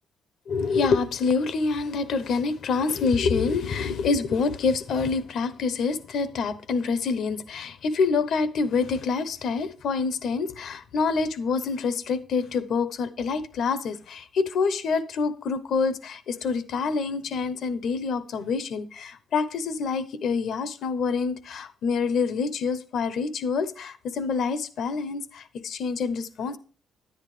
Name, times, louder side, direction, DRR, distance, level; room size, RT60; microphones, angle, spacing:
voice 1, 0.5-26.6, left 4 dB, 65° left, 13 dB, 0.8 m, -26 dB
10.0 x 9.6 x 3.3 m, 0.39 s
cardioid pair, 90°, 0 cm